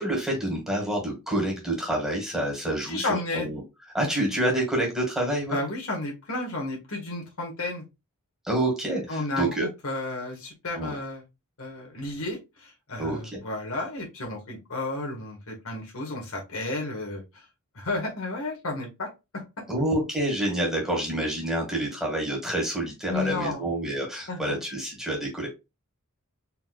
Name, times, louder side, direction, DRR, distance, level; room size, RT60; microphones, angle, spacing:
voice 1, 0.0-3.6 3.9-5.6 8.4-9.7 10.8-11.0 13.0-13.4 19.7-25.5, right 1 dB, ahead, -1 dB, 1.8 m, -28 dB
voice 2, 2.9-3.5 5.5-7.8 9.1-11.2 11.6-17.4 17.7-19.1 19.3-19.7 23.1-23.6 24.3-24.6, left 2 dB, 65° left, 0 dB, 1.6 m, -32 dB
4.4 x 3.9 x 2.3 m, 0.24 s
head